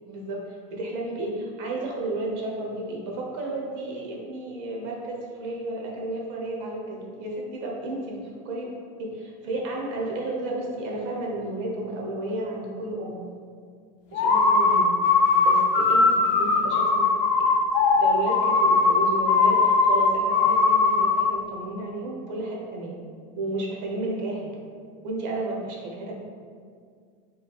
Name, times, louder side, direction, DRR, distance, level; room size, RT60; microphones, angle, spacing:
voice 1, 0.1-8.2 8.4-8.7 9.0-13.2 14.1-14.9 15.4-17.1 18.0-23.0 23.4-24.5 25.0-26.1, right 2 dB, 65° right, -1 dB, 0.9 m, -32 dB
sound 1, 14.1-21.3, left 4 dB, 50° left, 0.5 m, -20 dB
5.0 x 3.2 x 2.4 m, 2.1 s
supercardioid pair, 140°, 16 cm